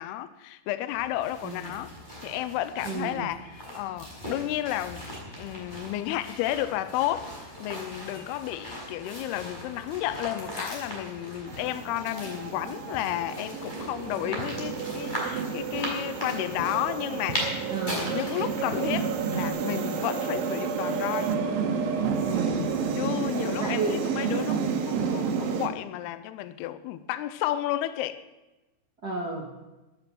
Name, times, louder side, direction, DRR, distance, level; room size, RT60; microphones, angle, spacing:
voice 1, 0.0-1.9 2.2-5.1 5.4-17.7 18.1-21.3 23.0-28.2, left 13 dB, 85° left, 2.4 m, -32 dB
sound 1, 0.9-19.5, equal, 10° left, 4.9 m, -39 dB
voice 2, 2.8-3.2 17.7-18.1 22.2-22.7 23.3-24.0 29.0-29.5, right 3 dB, 65° right, 0.9 m, -32 dB
sound 2, 11.5-25.7, right 6 dB, 85° right, 3.9 m, -30 dB
13.5 x 12.0 x 6.0 m
omnidirectional pair, 5.2 m